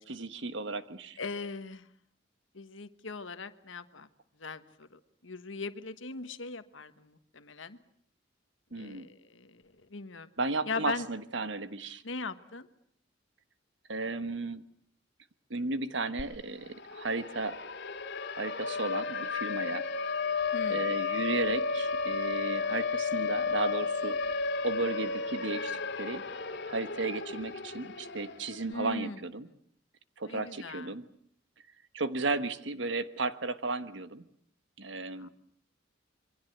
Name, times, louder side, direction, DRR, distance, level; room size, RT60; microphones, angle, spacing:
voice 1, 0.0-1.2 8.7-9.1 10.4-12.0 13.9-14.6 15.5-17.6 18.4-19.8 20.7-24.2 24.6-26.2 26.7-29.5 30.2-31.0 31.9-34.2 34.8-35.3, right 3 dB, 70° right, 11 dB, 1.4 m, -34 dB
voice 2, 1.2-1.9 2.5-4.1 4.4-7.8 8.7-10.3 10.7-11.1 12.0-12.7 20.5-20.9 28.7-29.2 30.3-30.9 35.2-35.3, left 3 dB, 85° left, 10 dB, 1.4 m, -39 dB
Siren, 16.2-16.3 16.6-28.6, left 4 dB, 60° left, 2.3 m, -33 dB
27.0 x 23.5 x 8.0 m, 0.65 s
head